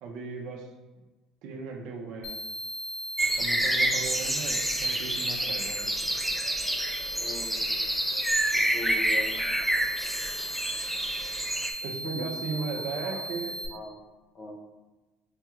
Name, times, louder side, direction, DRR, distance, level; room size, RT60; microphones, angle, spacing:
voice 1, 0.0-0.7 1.4-2.4 3.4-6.1 11.8-13.5, right 4 dB, 65° right, 2 dB, 0.6 m, -37 dB
sound 1, 2.2-13.7, equal, 80° left, 0.8 m, -37 dB
sound 2, 3.2-11.7, right 1 dB, 5° right, 0.3 m, -28 dB
voice 2, 7.1-7.8 8.5-9.5 12.0-12.7 13.0-13.2 13.7-13.9 14.3-14.6, left 1 dB, 35° left, 0 dB, 0.8 m, -40 dB
5.3 x 2.3 x 3.0 m, 1.2 s
cardioid pair, 150°, 0 cm